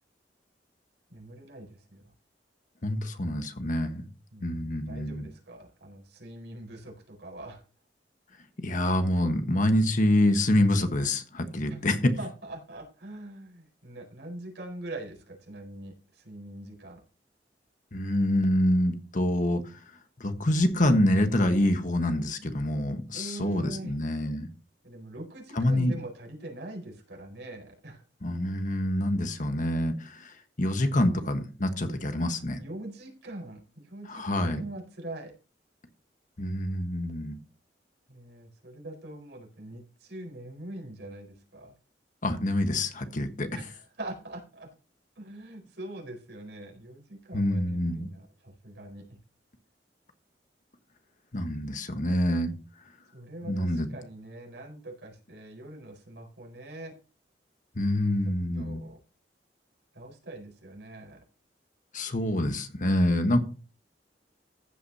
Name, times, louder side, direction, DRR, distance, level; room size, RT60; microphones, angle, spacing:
voice 1, 1.1-2.1 4.3-7.6 11.7-11.8 12.2-17.0 23.1-23.9 24.8-28.0 32.5-35.3 38.1-41.7 43.5-44.7 45.1-49.2 53.1-56.9 58.2-59.0 59.9-61.2, right 1 dB, 80° right, 0 dB, 4.6 m, -43 dB
voice 2, 2.8-4.0 4.4-5.3 8.6-12.1 17.9-19.6 20.2-24.5 25.6-25.9 28.2-32.6 34.1-34.6 36.4-37.4 42.2-43.5 47.3-48.1 51.3-52.5 53.5-53.9 57.7-58.8 61.9-63.4, left 1 dB, 50° left, 8 dB, 1.3 m, -26 dB
15.0 x 8.5 x 2.8 m, 0.35 s
head